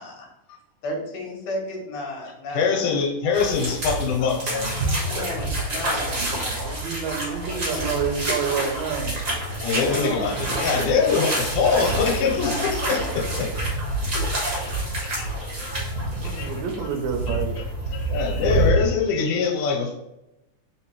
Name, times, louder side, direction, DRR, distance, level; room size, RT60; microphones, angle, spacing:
voice 1, 0.8-2.8 5.1-6.2 7.4-8.0 9.8-10.4 12.0-12.8, left 1 dB, 65° left, -1 dB, 2.0 m, -33 dB
voice 2, 2.5-4.8 6.4-6.5 9.6-14.0 14.3-16.5 17.3-17.4 17.9-19.9, left 5 dB, 80° left, 1 dB, 2.3 m, -25 dB
sound 1, 3.3-18.7, right 1 dB, 50° right, 0.9 m, -27 dB
voice 3, 5.8-9.3 16.2-17.6, right 6 dB, 80° right, 4 dB, 1.7 m, -29 dB
4.0 x 3.8 x 3.0 m, 0.88 s
omnidirectional pair, 3.6 m